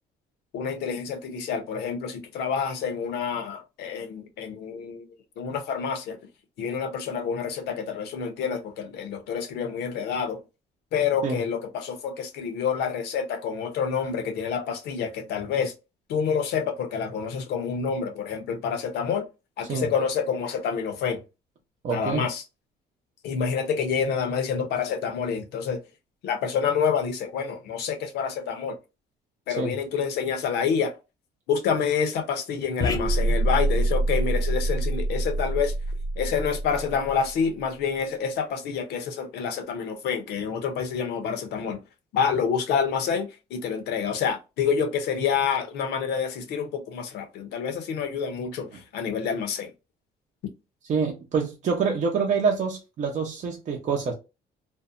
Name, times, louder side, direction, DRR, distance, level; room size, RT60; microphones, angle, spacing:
voice 1, 0.5-5.0 5.4-6.2 6.6-10.4 10.9-15.7 16.1-19.3 19.6-21.2 21.9-22.4 23.2-25.8 26.2-28.8 29.5-31.0 31.5-35.7 36.2-41.8 42.1-49.7, left 6 dB, 75° left, 0.7 m, -28 dB
voice 2, 21.8-22.2 29.6-29.7 50.9-54.1, right 5 dB, 45° right, 0.6 m, -26 dB
sound 1, 32.8-37.4, right 1 dB, 20° left, 0.5 m, -26 dB
2.6 x 2.1 x 2.5 m
cardioid pair, 110°, 17 cm